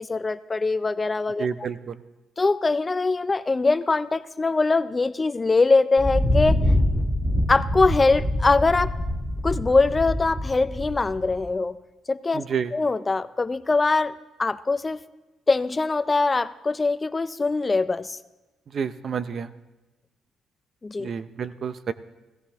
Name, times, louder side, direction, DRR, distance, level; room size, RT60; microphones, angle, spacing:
voice 1, 0.0-1.7 2.4-6.6 7.5-8.9 9.4-11.8 12.1-12.4 12.7-15.0 15.5-18.2 20.8-21.1, left 3 dB, 20° left, 14 dB, 0.4 m, -22 dB
voice 2, 1.4-2.0 12.3-12.7 18.7-19.5 21.0-21.9, right 6 dB, 40° right, 13 dB, 0.6 m, -29 dB
Thunder, 6.0-11.4, left 1 dB, ahead, 1.4 m, -25 dB
17.0 x 16.0 x 3.5 m, 1.1 s
cardioid pair, 140°, 0 cm